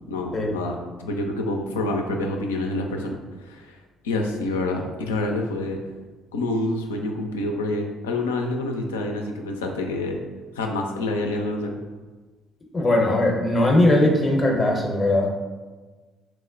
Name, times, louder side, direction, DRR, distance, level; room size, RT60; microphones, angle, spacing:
voice 1, 0.1-3.8 4.0-5.8 6.3-10.2 10.6-11.8, left 2 dB, 75° left, 2 dB, 0.3 m, -27 dB
voice 2, 12.7-15.3, left 1 dB, 25° left, -1 dB, 0.6 m, -19 dB
4.5 x 2.0 x 2.5 m, 1.3 s
figure-of-eight pair, 50°, 0 cm